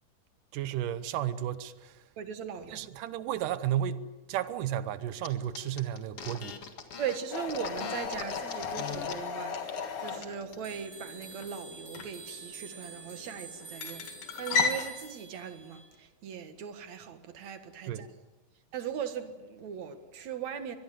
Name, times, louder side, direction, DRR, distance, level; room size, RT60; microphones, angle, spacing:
voice 1, 0.5-2.0 2.7-6.6 17.8-18.1, right 11 dB, 80° right, 2.6 m, -33 dB
voice 2, 2.2-2.9 7.0-9.6 10.0-14.1 14.4-18.1 18.7-20.8, right 8 dB, 60° right, 2.8 m, -39 dB
sound 1, 5.2-5.3 5.5-9.1 9.5-9.7 10.0-10.6, left 6 dB, 50° left, 2.6 m, -41 dB
sound 2, 7.3-14.9, left 5 dB, 65° left, 3.4 m, -35 dB
sound 3, 10.6-15.9, right 4 dB, 20° right, 7.7 m, -48 dB
24.5 x 21.5 x 7.8 m
omnidirectional pair, 3.7 m